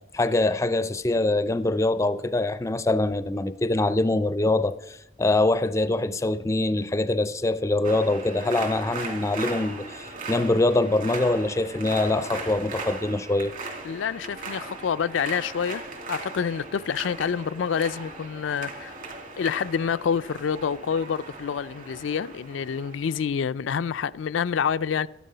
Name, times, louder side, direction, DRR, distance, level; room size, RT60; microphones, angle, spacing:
voice 1, 0.1-13.5, left 2 dB, 15° left, 0.4 m, -24 dB
sound 1, 7.8-23.3, right 3 dB, 45° right, 2.8 m, -38 dB
voice 2, 13.8-15.8 16.1-18.9 19.4-25.1, left 7 dB, 85° left, 0.4 m, -27 dB
13.5 x 11.5 x 5.5 m
head